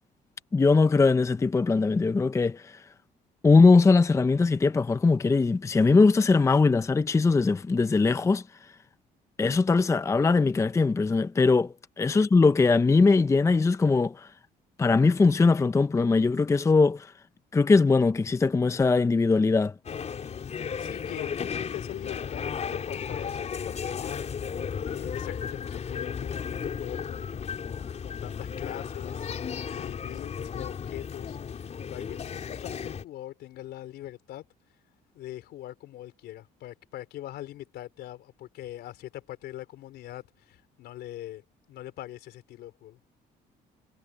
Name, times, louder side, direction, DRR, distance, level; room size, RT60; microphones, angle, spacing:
voice 1, 0.5-2.8 3.4-8.4 9.4-14.3 14.8-17.1 17.5-19.7, left 4 dB, 15° left, 0.6 m, -21 dB
sound 1, 19.8-33.0, left 7 dB, 40° left, 4.3 m, -34 dB
voice 2, 20.8-24.2 24.9-27.4 28.0-29.3 29.7-34.4 35.1-41.4 41.7-43.0, left 14 dB, 75° left, 4.3 m, -42 dB
cardioid pair, 110°, 17 cm